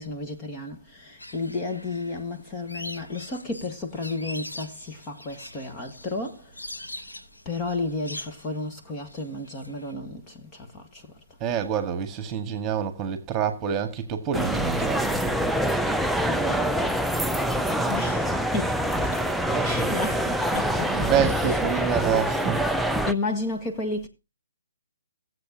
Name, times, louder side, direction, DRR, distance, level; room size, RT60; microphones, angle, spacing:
voice 1, 0.0-6.6 7.4-11.1 16.3-17.1 17.4-19.2 19.6-21.9 23.0-24.1, left 2 dB, 20° left, 1.6 m, -33 dB
sound 1, 1.2-9.9, left 1 dB, 85° left, 3.2 m, -42 dB
voice 2, 11.4-15.5 19.5-20.0 20.9-22.7, right 8 dB, 20° right, 1.9 m, -27 dB
sound 2, 14.3-23.1, right 1 dB, ahead, 0.4 m, -25 dB
17.0 x 8.1 x 2.8 m
figure-of-eight pair, 135°, 0 cm